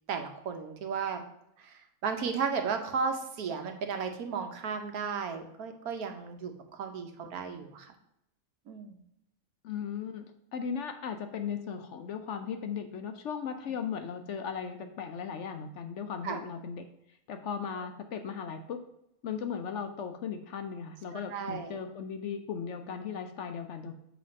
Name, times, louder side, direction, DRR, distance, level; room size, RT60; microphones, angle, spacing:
voice 1, 0.1-1.2 2.0-6.5 6.8-7.9 8.7-9.0 16.2-16.4 21.3-21.7, right 5 dB, 80° right, 5 dB, 1.4 m, -34 dB
voice 2, 9.6-10.3 10.5-16.8 17.3-18.8 19.2-23.9, left 7 dB, 65° left, 7 dB, 0.8 m, -37 dB
7.6 x 3.4 x 5.1 m, 0.80 s
omnidirectional pair, 1.5 m